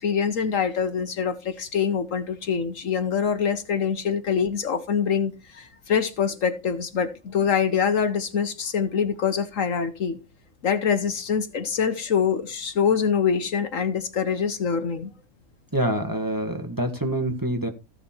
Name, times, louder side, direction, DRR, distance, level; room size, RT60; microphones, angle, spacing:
voice 1, 0.0-10.2 10.6-15.1, left 7 dB, 60° left, 1.3 m, -25 dB
voice 2, 15.7-17.7, right 1 dB, 15° right, 1.3 m, -26 dB
15.0 x 5.8 x 4.3 m
omnidirectional pair, 1.6 m